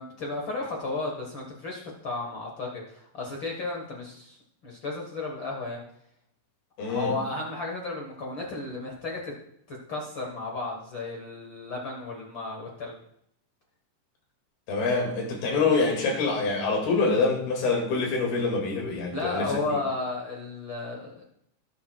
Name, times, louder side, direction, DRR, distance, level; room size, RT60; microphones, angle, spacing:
voice 1, 0.0-4.4 4.6-5.8 6.9-9.3 9.7-12.9 19.1-21.2, left 3 dB, 55° left, 0 dB, 1.3 m, -33 dB
voice 2, 6.8-7.1 14.7-19.8, left 4 dB, 90° left, 0 dB, 4.2 m, -26 dB
17.5 x 8.4 x 2.3 m, 0.72 s
omnidirectional pair, 4.3 m